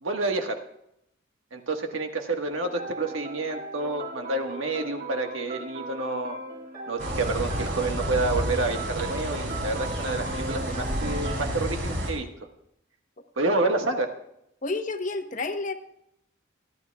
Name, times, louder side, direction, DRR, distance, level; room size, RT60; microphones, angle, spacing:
voice 1, 0.0-0.6 1.5-6.4 6.9-12.3 13.4-14.1, right 2 dB, 90° right, 5 dB, 1.5 m, -29 dB
sound 1, 2.5-11.5, right 2 dB, 50° right, 6.5 m, -38 dB
sound 2, 7.0-12.1, equal, 65° right, 3.7 m, -31 dB
voice 2, 14.6-15.7, left 3 dB, 40° left, 7 dB, 1.0 m, -30 dB
28.5 x 11.0 x 2.3 m, 0.79 s
head